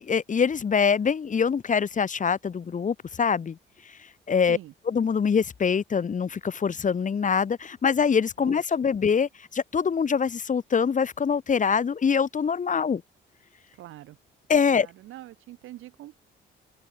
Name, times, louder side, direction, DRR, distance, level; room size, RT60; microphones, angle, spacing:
voice 1, 0.0-3.6 3.9-4.0 4.3-4.6 4.9-13.0 14.5-14.9, left 6 dB, 40° left, 1.8 m, -24 dB
voice 2, 8.4-8.9 13.8-14.2 14.7-16.1, right 15 dB, 85° right, 5.8 m, -44 dB
cardioid pair, 90°, 20 cm